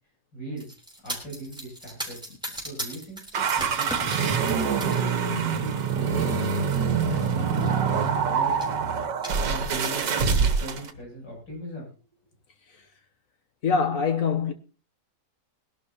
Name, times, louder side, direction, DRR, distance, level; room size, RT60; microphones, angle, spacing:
voice 1, 0.3-0.7 1.0-2.2 2.5-6.7 7.1-8.6 9.4-11.9, right 1 dB, 80° left, 8.8 m, -38 dB
sound 1, 0.6-5.1 5.5-5.9 6.8-6.9 7.2-7.3 7.6-8.1 8.6-8.8 9.2-10.1, right 1 dB, ahead, 3.8 m, -38 dB
sound 2, 3.3-10.9, right 6 dB, 80° right, 1.9 m, -25 dB
voice 2, 13.6-14.5, left 5 dB, 55° left, 1.3 m, -24 dB
21.5 x 11.5 x 2.9 m
omnidirectional pair, 1.9 m